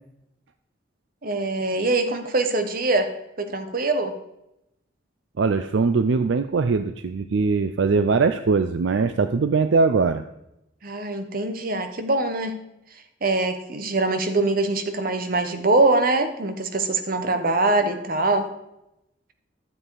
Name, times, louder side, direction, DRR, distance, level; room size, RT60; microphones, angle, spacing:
voice 1, 1.2-3.1 3.4-4.1 10.8-12.6 13.2-18.5, right 2 dB, 50° right, 8 dB, 1.1 m, -23 dB
voice 2, 5.4-10.2, right 4 dB, 70° right, 10 dB, 0.5 m, -21 dB
12.5 x 7.4 x 4.8 m, 0.87 s
head